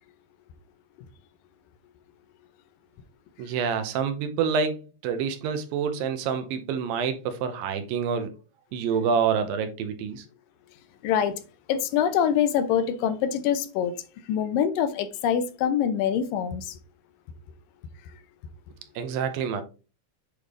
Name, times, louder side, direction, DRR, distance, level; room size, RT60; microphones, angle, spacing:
voice 1, 3.4-8.3 8.7-10.2 19.0-19.6, right 6 dB, 90° right, 2.6 m, -27 dB
voice 2, 11.0-11.4 11.7-14.0 14.3-16.8, left 8 dB, 80° left, 2.2 m, -25 dB
8.3 x 3.4 x 3.7 m
omnidirectional pair, 4.0 m